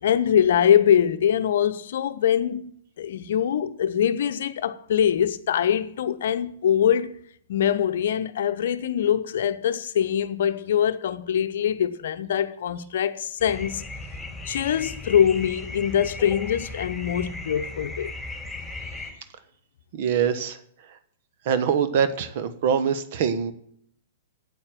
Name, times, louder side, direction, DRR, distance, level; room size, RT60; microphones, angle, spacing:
voice 1, 0.0-2.7 3.0-7.2 7.5-13.9 14.5-18.1, left 9 dB, 60° left, 0.8 m, -23 dB
sound 1, 13.4-19.1, left 3 dB, ahead, 4.7 m, -36 dB
voice 2, 19.9-21.0 21.4-23.5, right 7 dB, 50° right, 1.2 m, -24 dB
8.8 x 8.7 x 7.4 m
figure-of-eight pair, 110°, 0 cm